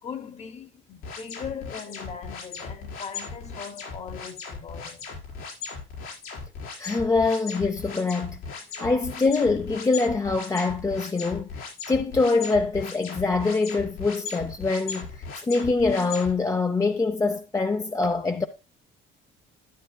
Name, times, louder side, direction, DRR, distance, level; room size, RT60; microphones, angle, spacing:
voice 1, 0.0-5.1, left 7 dB, 30° left, 1.0 m, -39 dB
sound 1, 1.0-16.3, left 5 dB, 85° left, 4.9 m, -37 dB
voice 2, 6.8-8.4 8.8-15.1 15.4-18.5, left 3 dB, 15° left, 0.6 m, -24 dB
12.0 x 8.6 x 2.3 m
cardioid pair, 125°, 21 cm